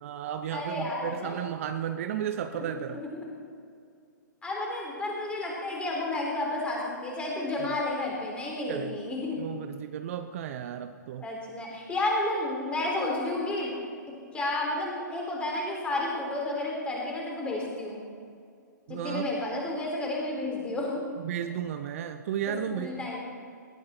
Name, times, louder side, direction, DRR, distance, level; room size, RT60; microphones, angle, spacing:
voice 1, 0.0-3.0 8.7-9.0 9.4-11.2 18.9-19.3 21.2-23.2, right 9 dB, 45° right, 9 dB, 0.7 m, -34 dB
voice 2, 0.5-1.4 2.5-2.6 2.9-3.3 4.4-9.4 11.2-13.7 14.3-18.0 18.9-21.0 22.7-23.2, left 2 dB, 10° left, -2 dB, 3.9 m, -31 dB
19.0 x 13.0 x 4.4 m, 2.3 s
figure-of-eight pair, 120°, 10 cm